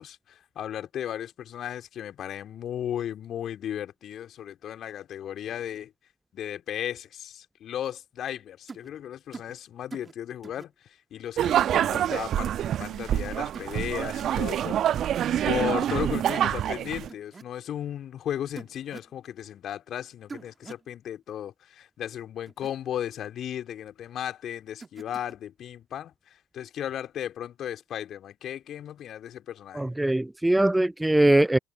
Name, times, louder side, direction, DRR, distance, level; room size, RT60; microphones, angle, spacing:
voice 1, 0.0-5.9 6.3-14.8 15.4-29.9, left 10 dB, 50° left, 3.2 m, -35 dB
sound 1, 8.7-8.9 9.3-9.5 9.9-10.1 10.4-10.7 11.9-12.1 13.5-13.8 14.9-15.2 15.5-15.8 17.1-17.4 18.6-19.1 20.3-20.9 22.5-22.7 24.8-25.3, right 4 dB, 25° right, 1.8 m, -44 dB
sound 2, 11.4-17.1, right 10 dB, 50° right, 1.1 m, -26 dB
voice 2, 29.7-31.6, right 1 dB, 10° right, 0.3 m, -21 dB
figure-of-eight pair, 55°, 0 cm